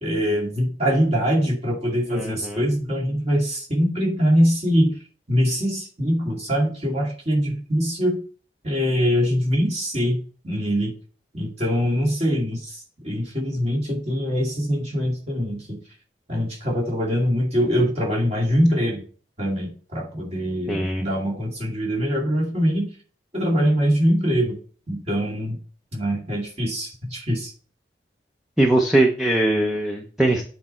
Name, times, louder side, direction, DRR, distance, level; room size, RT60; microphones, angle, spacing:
voice 1, 0.0-4.9 5.3-8.2 8.6-10.2 10.4-10.9 11.3-15.8 16.3-19.0 19.4-22.9 23.3-24.6 24.9-25.6 25.9-27.5, equal, 35° right, -2 dB, 2.3 m, -23 dB
voice 2, 2.1-2.6 20.7-21.1 28.6-30.5, right 1 dB, ahead, 1 dB, 0.7 m, -21 dB
8.5 x 4.2 x 4.4 m, 0.41 s
head